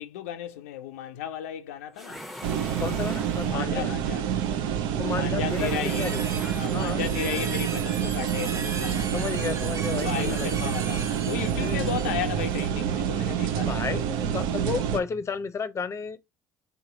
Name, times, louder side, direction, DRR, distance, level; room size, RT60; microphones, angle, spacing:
voice 1, 0.0-2.2 3.5-4.2 5.2-6.1 6.5-9.2 10.0-13.8, left 10 dB, 80° left, 0.4 m, -34 dB
sound 1, 1.9-3.8 5.4-7.1, left 1 dB, ahead, 0.9 m, -42 dB
sound 2, 2.4-15.0, right 9 dB, 70° right, 0.5 m, -28 dB
voice 2, 2.8-3.9 5.0-6.2 6.7-7.2 9.1-10.7 11.5-12.0 13.6-16.2, left 6 dB, 35° left, 0.6 m, -32 dB
sound 3, 5.8-12.7, right 4 dB, 40° right, 0.9 m, -38 dB
3.8 x 2.9 x 3.8 m
hypercardioid pair, 60°, 8 cm